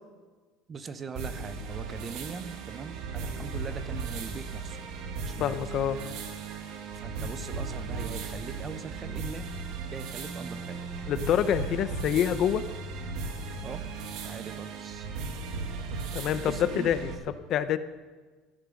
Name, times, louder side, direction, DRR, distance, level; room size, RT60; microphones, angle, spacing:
voice 1, 0.7-4.8 5.2-5.7 7.0-9.5 9.9-11.0 13.6-13.8 14.2-15.1 16.2-16.9, right 5 dB, 25° right, 12 dB, 0.7 m, -41 dB
sound 1, 1.2-17.2, right 4 dB, 60° right, 1.6 m, -36 dB
voice 2, 5.4-6.0 11.1-12.6 16.1-16.5 16.8-17.1 17.5-17.8, left 9 dB, 45° left, 13 dB, 0.6 m, -26 dB
13.5 x 10.5 x 6.3 m, 1.4 s
cardioid pair, 155°, 0 cm